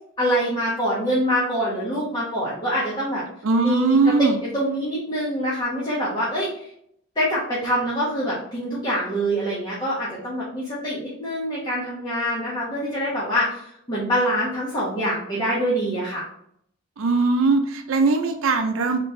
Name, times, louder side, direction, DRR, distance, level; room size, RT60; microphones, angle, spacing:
voice 1, 0.2-3.2 3.6-6.5 7.2-13.6 13.9-16.2, equal, 20° left, -8 dB, 1.1 m, -25 dB
voice 2, 3.4-4.4 17.0-19.0, right 3 dB, 80° right, 6 dB, 0.5 m, -20 dB
4.1 x 3.2 x 3.2 m, 0.69 s
head